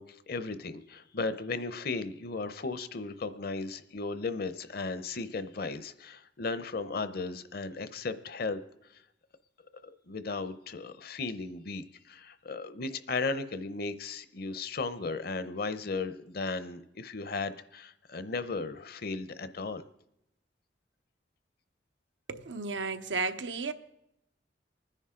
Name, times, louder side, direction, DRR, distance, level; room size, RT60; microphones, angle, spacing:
voice 1, 0.0-8.6 8.9-9.0 10.1-19.8, left 3 dB, 55° left, 0.7 m, -36 dB
voice 2, 22.3-23.7, right 4 dB, 90° right, 0.9 m, -33 dB
24.5 x 10.0 x 3.8 m
head